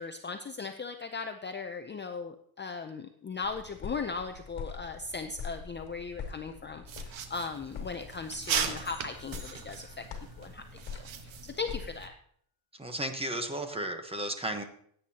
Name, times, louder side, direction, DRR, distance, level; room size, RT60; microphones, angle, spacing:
voice 1, 0.0-10.0 10.4-10.6 10.9-12.1, left 4 dB, 25° left, 6 dB, 0.5 m, -38 dB
sound 1, 3.4-12.1, left 6 dB, 60° left, 2.6 m, -44 dB
sound 2, 6.9-12.1, right 8 dB, 70° right, 1.4 m, -38 dB
sound 3, 8.4-10.9, left 1 dB, 40° right, 5.5 m, -55 dB
voice 2, 12.8-14.6, right 1 dB, 10° right, 6 dB, 1.1 m, -34 dB
16.5 x 9.1 x 2.9 m, 0.64 s
cardioid pair, 160°, 48 cm